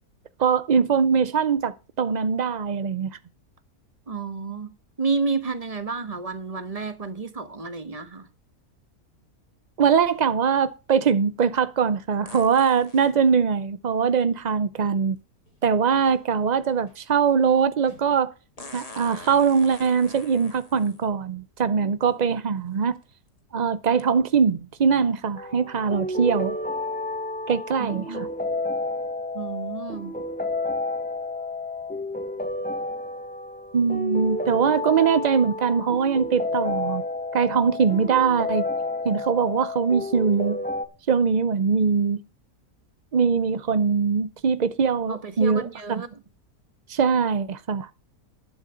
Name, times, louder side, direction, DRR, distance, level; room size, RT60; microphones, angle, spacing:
voice 1, 0.4-3.1 9.8-15.2 15.6-18.3 18.7-23.0 23.5-26.6 27.5-28.3 33.7-37.0 37.3-38.7 39.0-40.6 41.1-42.2 43.1-45.7 46.9-47.9, right 6 dB, 55° right, 0.4 m, -22 dB
voice 2, 4.1-4.7 5.0-8.3 27.8-28.3 29.3-30.1 45.1-46.2, right 4 dB, 25° right, 1.3 m, -30 dB
sound 1, 5.8-5.9 12.3-13.2 15.2-15.3 18.6-21.1 22.0-22.1 22.8-23.0 24.0-24.1, left 2 dB, 25° left, 1.7 m, -44 dB
sound 2, 15.4-16.4 16.7-18.3 18.6-20.0, equal, 75° left, 6.3 m, -55 dB
sound 3, 25.4-40.9, left 2 dB, 5° left, 1.4 m, -30 dB
11.5 x 9.3 x 5.0 m
omnidirectional pair, 1.6 m